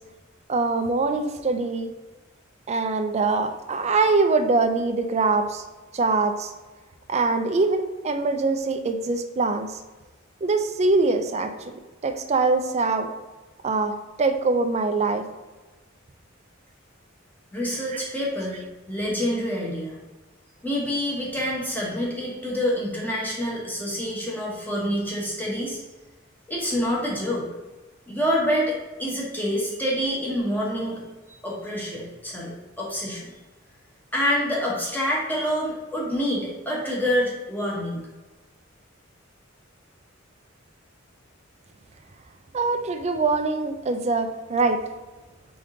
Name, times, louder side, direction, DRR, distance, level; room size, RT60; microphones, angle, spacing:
voice 1, 0.5-1.9 2.7-5.6 5.9-6.5 7.1-9.7 10.4-13.1 13.6-15.3 17.9-18.0 42.5-44.8, right 3 dB, 35° right, 7 dB, 0.4 m, -23 dB
voice 2, 17.5-18.6 18.9-20.0 20.6-25.8 26.5-27.5 28.1-31.0 31.4-33.3 34.1-38.0, equal, 10° left, -4 dB, 1.2 m, -27 dB
3.8 x 3.6 x 3.8 m, 1.2 s
head